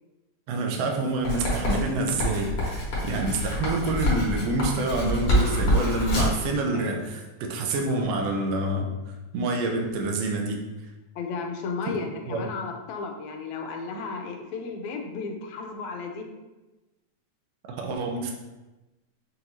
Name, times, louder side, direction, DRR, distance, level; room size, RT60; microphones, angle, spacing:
voice 1, 0.5-8.9 9.3-10.7 11.9-12.0 12.3-12.4 17.7-18.4, right 2 dB, 75° right, 2 dB, 1.5 m, -27 dB
Writing, 1.2-6.5, left 1 dB, 55° left, 1.9 m, -26 dB
Cough, 5.3-6.5 6.7-6.8 7.4-7.5 8.0-8.1, left 2 dB, 40° right, 0.5 m, -39 dB
voice 2, 11.2-16.3, left 4 dB, 80° left, 3 dB, 1.9 m, -34 dB
5.9 x 2.6 x 2.9 m, 1.1 s
omnidirectional pair, 3.3 m